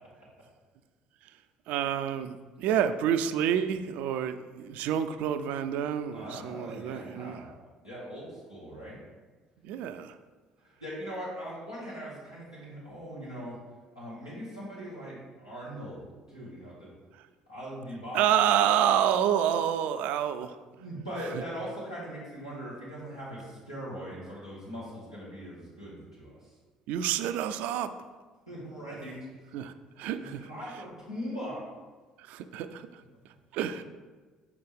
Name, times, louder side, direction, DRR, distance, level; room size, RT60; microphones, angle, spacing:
voice 1, 1.7-7.4 9.6-10.2 17.2-17.3 18.1-20.6 21.3-21.4 26.9-27.9 29.5-30.5 32.2-33.0 33.5-33.9, right 9 dB, 60° right, 11 dB, 0.3 m, -28 dB
voice 2, 6.1-7.5 7.8-9.0 10.6-13.6 13.9-16.9 17.5-18.3 20.8-26.5 28.5-29.1 30.0-31.6, equal, 90° left, -8 dB, 1.7 m, -40 dB
5.9 x 5.1 x 3.4 m, 1.4 s
figure-of-eight pair, 55°, 3 cm